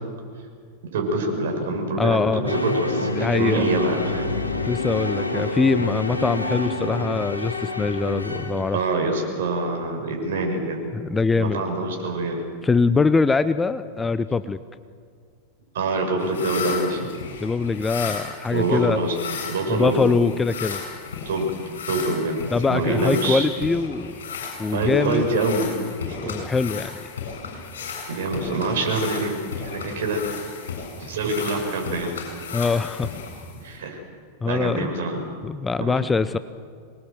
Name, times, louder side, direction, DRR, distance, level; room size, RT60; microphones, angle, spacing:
voice 1, 0.9-4.4 8.7-10.8 11.3-12.5 15.7-17.2 18.5-19.2 19.5-20.2 21.2-21.5 21.9-22.4 22.7-23.5 24.7-25.7 26.1-26.4 28.1-30.2 31.0-32.1 33.6-34.0 34.4-35.2 35.8-35.9, right 2 dB, 60° right, 2 dB, 6.4 m, -25 dB
voice 2, 2.0-2.6 3.1-3.6 4.6-8.8 10.9-11.6 12.6-14.6 17.4-19.0 19.7-20.8 22.5-24.1 24.6-25.3 26.0-27.1 32.5-33.1 34.4-34.9 35.4-36.4, left 4 dB, 15° left, 14 dB, 0.7 m, -23 dB
sound 1, 2.5-9.0, left 2 dB, 80° left, 2.2 m, -28 dB
sound 2, 16.2-33.8, left 6 dB, 60° left, 7.5 m, -35 dB
26.0 x 21.0 x 7.8 m, 2.1 s
figure-of-eight pair, 90°, 0 cm